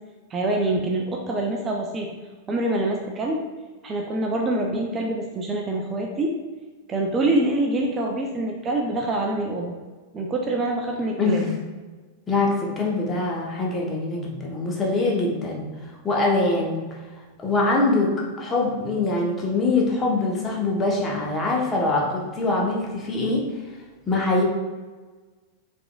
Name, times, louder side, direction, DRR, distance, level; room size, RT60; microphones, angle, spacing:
voice 1, 0.3-2.1 2.5-3.4 3.8-6.3 6.9-9.7 10.1-11.4, right 2 dB, 25° right, 0 dB, 0.5 m, -25 dB
voice 2, 11.2-11.5 12.3-15.7 16.0-16.8 17.4-23.5 24.1-24.4, left 2 dB, 20° left, -2 dB, 1.0 m, -23 dB
4.8 x 3.6 x 2.3 m, 1.4 s
figure-of-eight pair, 90°, 0 cm